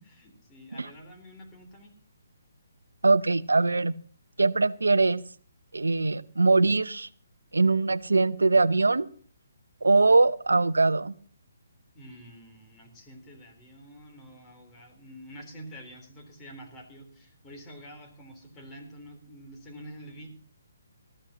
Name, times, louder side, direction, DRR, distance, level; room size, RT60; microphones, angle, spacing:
voice 1, 0.2-1.9 11.9-20.3, equal, 20° left, 2 dB, 3.5 m, -47 dB
voice 2, 3.0-3.9 4.4-5.2 5.7-7.1 7.5-9.1 9.8-11.1, right 3 dB, 85° right, 16 dB, 0.7 m, -22 dB
19.0 x 14.0 x 2.9 m, 0.43 s
figure-of-eight pair, 140°, 0 cm